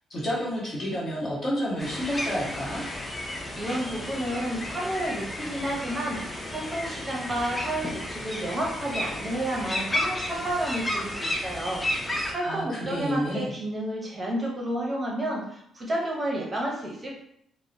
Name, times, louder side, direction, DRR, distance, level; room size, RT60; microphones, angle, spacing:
voice 1, 0.1-2.8 12.4-13.5, equal, 40° left, -6 dB, 1.1 m, -29 dB
sound 1, 1.8-12.3, left 1 dB, 15° left, 0.5 m, -32 dB
voice 2, 3.5-17.2, right 1 dB, 25° right, -2 dB, 0.7 m, -31 dB
2.8 x 2.0 x 2.6 m, 0.73 s
cardioid pair, 90°, 0 cm